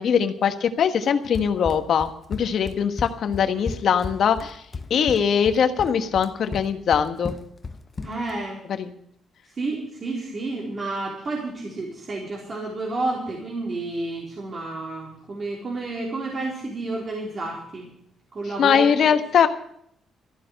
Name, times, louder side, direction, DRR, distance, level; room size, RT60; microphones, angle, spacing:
voice 1, 0.0-4.6 4.9-7.4 8.7-8.9 18.6-19.5, left 7 dB, 65° left, 8 dB, 1.3 m, -21 dB
Run, 1.3-8.4, left 4 dB, 30° left, 1.1 m, -35 dB
voice 2, 8.0-8.6 9.6-17.8 18.3-19.2, right 2 dB, 40° right, -3 dB, 4.0 m, -30 dB
14.5 x 11.0 x 6.5 m, 0.69 s
cardioid pair, 90°, 0 cm